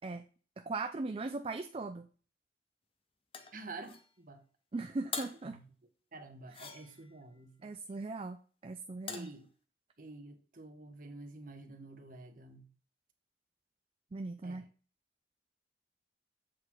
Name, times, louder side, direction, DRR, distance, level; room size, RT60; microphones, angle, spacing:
voice 1, 0.6-2.1 4.7-5.6 7.6-9.3 14.1-14.6, right 3 dB, 30° right, 0.4 m, -39 dB
sound 1, 3.3-4.1 5.1-5.5 6.5-7.2 9.1-9.4, left 6 dB, 30° left, 0.7 m, -43 dB
voice 2, 3.5-4.4 5.4-5.7 6.1-7.7 9.1-9.5 10.0-12.7 14.4-14.6, right 2 dB, 50° right, 1.1 m, -49 dB
7.6 x 4.0 x 4.5 m
head